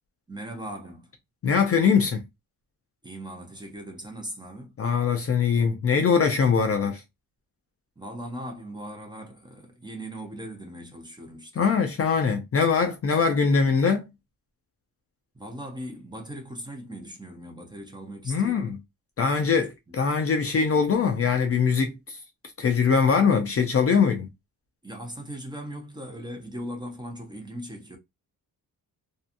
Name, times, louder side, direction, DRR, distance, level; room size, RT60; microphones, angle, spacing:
voice 1, 0.3-1.1 3.0-4.8 8.0-11.7 15.3-18.7 24.8-28.0, right 1 dB, 10° right, 0.5 m, -39 dB
voice 2, 1.4-2.2 4.8-7.0 11.6-14.1 18.3-18.8 19.2-22.2 22.6-24.3, left 5 dB, 40° left, 0.4 m, -22 dB
2.7 x 2.3 x 2.4 m
wide cardioid pair, 170°, 38 cm